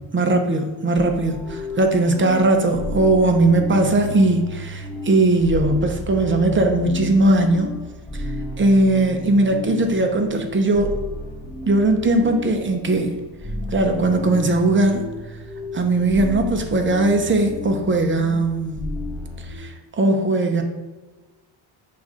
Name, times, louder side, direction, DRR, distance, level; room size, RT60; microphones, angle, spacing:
voice 1, 0.1-7.7 8.2-8.3 8.6-11.0 11.6-13.2 13.7-15.0 15.7-18.8 19.6-20.6, right 2 dB, 25° right, 5 dB, 0.7 m, -19 dB
sound 1, 0.9-19.6, left 1 dB, 10° left, 1.5 m, -33 dB
5.9 x 3.7 x 4.9 m, 1.2 s
cardioid pair, 140°, 46 cm